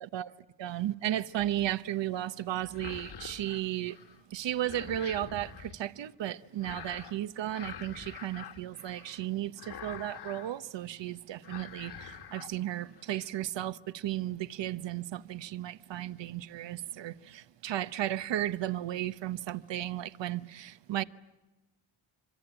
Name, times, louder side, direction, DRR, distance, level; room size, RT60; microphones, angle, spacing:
voice 1, 0.6-4.0 4.3-21.0, right 13 dB, 70° right, 1.0 m, -34 dB
sound 1, 1.4-1.8 2.6-4.2 4.4-5.8 6.6-7.2 7.5-9.3 9.6-10.6 10.9-11.1 11.4-12.5 12.9-13.3, left 8 dB, 60° left, 1.7 m, -46 dB
26.0 x 24.5 x 8.9 m
cardioid pair, 105°, 46 cm